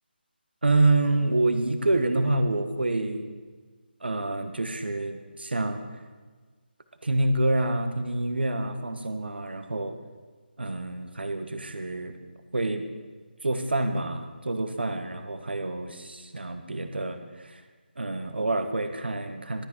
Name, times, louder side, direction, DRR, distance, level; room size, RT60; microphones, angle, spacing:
voice 1, 0.6-3.3 4.0-5.8 7.0-9.9 10.6-12.1 12.5-12.9 13.4-17.2 17.4-17.6 18.0-19.7, right 2 dB, 70° right, 7 dB, 1.4 m, -27 dB
12.5 x 8.3 x 6.3 m, 1.4 s
figure-of-eight pair, 155°, 6 cm